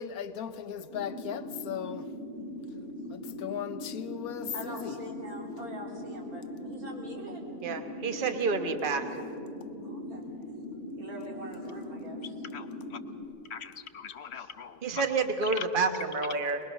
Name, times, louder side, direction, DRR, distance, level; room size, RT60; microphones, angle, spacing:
voice 1, 0.0-2.1 3.1-5.0, left 8 dB, 75° left, 1.2 m, -37 dB
sound 1, 0.9-13.2, left 1 dB, 60° right, 4.1 m, -40 dB
voice 2, 4.5-7.4 9.8-10.3 11.0-12.3, right 1 dB, 75° right, 3.7 m, -43 dB
voice 3, 7.6-9.2 14.8-16.6, right 4 dB, 35° right, 1.3 m, -29 dB
voice 4, 12.5-13.0 13.5-15.0 15.6-15.7, left 7 dB, 50° left, 1.0 m, -41 dB
23.0 x 21.0 x 6.4 m
omnidirectional pair, 1.6 m